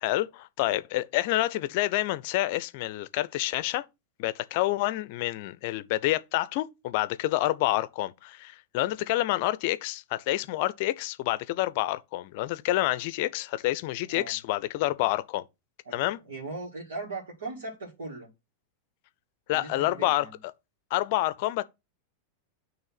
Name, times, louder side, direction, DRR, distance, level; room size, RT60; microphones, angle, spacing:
voice 1, 0.0-3.8 4.2-15.5 15.9-16.2 19.5-20.3 20.9-21.6, left 16 dB, 50° left, 0.6 m, -28 dB
voice 2, 15.8-18.3 19.5-20.4, right 3 dB, 65° right, 2.2 m, -39 dB
8.9 x 3.2 x 5.8 m
figure-of-eight pair, 90°, 0 cm